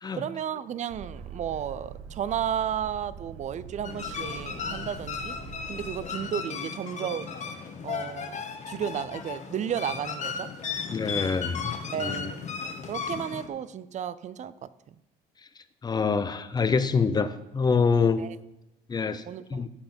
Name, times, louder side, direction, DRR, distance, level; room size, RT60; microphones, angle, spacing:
voice 1, 0.1-5.4 5.7-7.3 7.8-8.4 8.7-10.5 11.9-12.4 12.9-14.7 18.2-18.3 19.3-19.7, right 9 dB, 45° right, 17 dB, 0.5 m, -33 dB
Boat Water vehicle, 0.9-6.1, right 6 dB, 75° right, 1.1 m, -44 dB
sound 1, 3.8-13.5, left 5 dB, 45° left, 1.2 m, -35 dB
voice 2, 10.9-12.3 15.8-18.3 18.9-19.2 19.5-19.7, left 5 dB, 25° left, 11 dB, 0.7 m, -26 dB
15.5 x 5.8 x 4.4 m, 0.91 s
cardioid pair, 110°, 17 cm